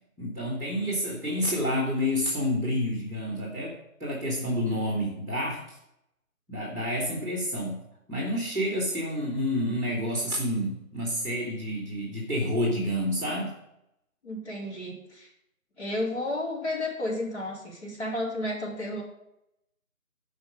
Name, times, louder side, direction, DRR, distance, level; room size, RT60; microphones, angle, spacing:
voice 1, 0.2-5.8 6.5-7.8 8.1-13.6, left 1 dB, 10° right, -3 dB, 2.0 m, -29 dB
voice 2, 14.2-15.3 15.8-19.0, left 1 dB, 50° left, -5 dB, 3.8 m, -32 dB
12.0 x 5.3 x 5.3 m, 0.81 s
figure-of-eight pair, 160°, 43 cm